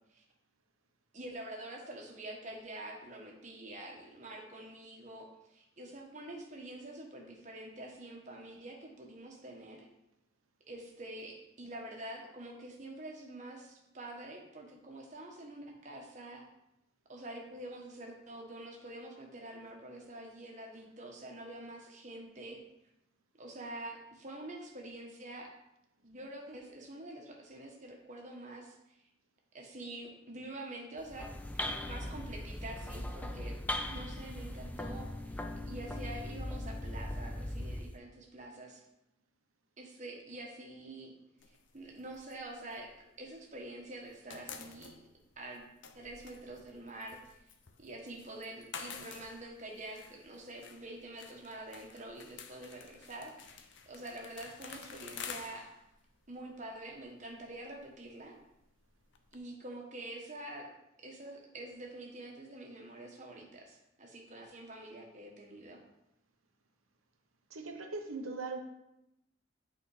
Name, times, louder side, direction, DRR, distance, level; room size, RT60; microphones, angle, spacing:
voice 1, 1.1-9.9 10.7-16.4 17.1-22.6 23.4-25.5 26.0-29.0 29.5-33.6 33.9-38.8 39.8-41.1 41.7-42.9 43.2-44.9 45.4-45.6 45.9-47.4 47.8-55.7 56.3-58.4 59.3-60.7 61.0-65.8, right 1 dB, 35° right, 0 dB, 1.3 m, -46 dB
sound 1, 31.0-38.0, left 1 dB, 5° left, 0.3 m, -39 dB
sound 2, 41.4-43.6 43.9-59.4, left 6 dB, 60° left, 0.6 m, -51 dB
voice 2, 67.5-68.6, right 3 dB, 90° right, 4 dB, 1.1 m, -39 dB
8.5 x 4.3 x 4.9 m, 0.87 s
head